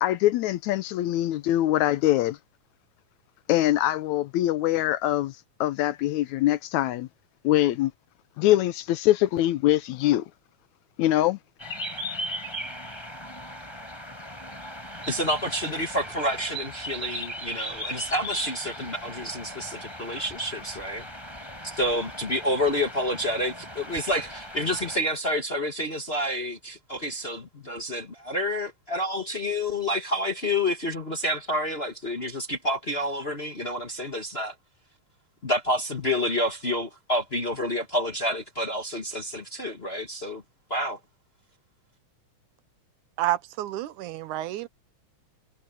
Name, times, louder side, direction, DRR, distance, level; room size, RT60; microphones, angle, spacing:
voice 1, 0.0-2.4 3.5-5.3 5.6-7.1 7.4-7.9 8.4-10.3 11.0-11.4, left 14 dB, 75° left, 1.9 m, -23 dB
sound 1, 11.6-25.0, equal, 10° left, 5.2 m, -38 dB
voice 2, 15.1-21.0 21.6-34.5 35.4-40.4 40.7-41.0, left 1 dB, 35° left, 1.1 m, -29 dB
voice 3, 43.2-44.7, right 14 dB, 75° right, 2.3 m, -29 dB
omnidirectional pair, 3.6 m